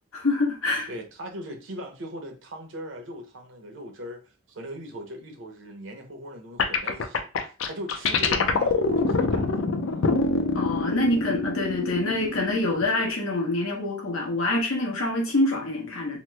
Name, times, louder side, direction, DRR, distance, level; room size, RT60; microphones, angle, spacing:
voice 1, 0.1-0.9 10.5-16.2, left 2 dB, 90° left, 1.0 m, -26 dB
voice 2, 0.9-10.1, equal, 70° right, 0.7 m, -39 dB
sound 1, 6.6-13.1, left 4 dB, 70° left, 0.4 m, -25 dB
3.0 x 2.0 x 3.2 m
head